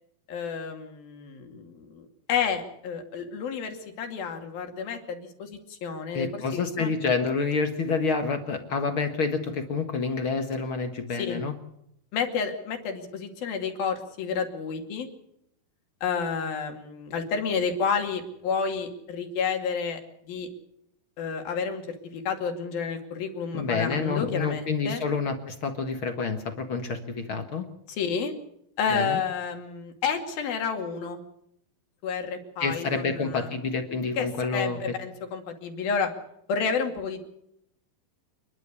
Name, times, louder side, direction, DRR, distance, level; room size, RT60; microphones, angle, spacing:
voice 1, 0.3-6.9 11.2-11.4 12.1-15.1 16.0-20.5 21.2-21.8 22.1-25.0 27.9-28.3 28.8-31.2 32.0-33.5 34.2-36.1 36.5-37.2, left 6 dB, 75° left, 4 dB, 4.3 m, -30 dB
voice 2, 6.1-11.5 23.5-27.7 28.9-29.2 32.6-34.8, left 4 dB, 50° left, 6 dB, 1.6 m, -28 dB
28.5 x 11.5 x 8.3 m, 0.77 s
omnidirectional pair, 4.3 m